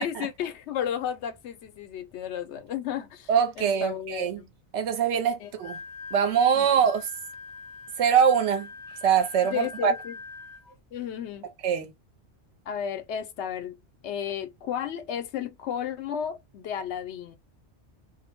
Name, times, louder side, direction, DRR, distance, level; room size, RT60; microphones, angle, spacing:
voice 1, 0.0-3.3 3.6-4.5 5.4-5.5 6.5-6.7 9.4-10.2 10.9-11.5 12.7-13.8 14.0-17.4, left 9 dB, 75° left, 0.9 m, -33 dB
voice 2, 3.3-4.4 4.7-5.8 6.1-7.0 8.0-8.7 9.0-9.9 11.6-11.9, right 7 dB, 80° right, 0.9 m, -23 dB
Wind instrument woodwind instrument, 5.4-10.7, left 4 dB, 45° left, 0.6 m, -43 dB
2.3 x 2.1 x 2.7 m
omnidirectional pair, 1.2 m